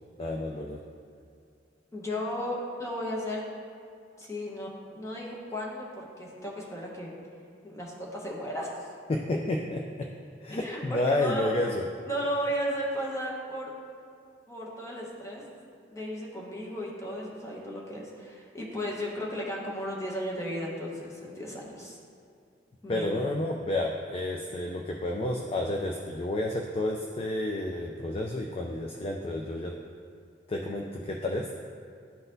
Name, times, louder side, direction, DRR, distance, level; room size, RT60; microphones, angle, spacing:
voice 1, 0.2-0.8 9.1-10.1 10.4-11.8 22.9-29.8 30.5-31.5, left 1 dB, 30° left, 1 dB, 0.3 m, -30 dB
voice 2, 1.9-3.4 4.2-7.1 7.6-8.9 10.5-11.5 12.1-13.7 14.5-15.5 15.9-22.0 22.8-23.1, equal, 15° left, -3 dB, 1.0 m, -35 dB
11.5 x 4.0 x 2.7 m, 2.4 s
head